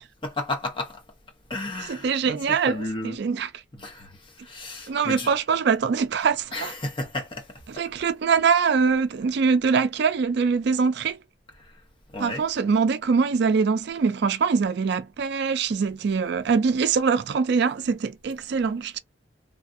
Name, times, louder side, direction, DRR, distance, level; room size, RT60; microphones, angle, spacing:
voice 1, 0.2-1.0 1.5-3.2 3.7-5.3 6.5-7.5 7.7-7.8 11.6-11.7 12.1-12.5, left 2 dB, 25° left, 0.8 m, -33 dB
voice 2, 1.9-3.5 4.9-6.7 7.8-11.2 12.2-19.0, right 5 dB, 55° right, 0.3 m, -23 dB
3.3 x 2.4 x 2.5 m
head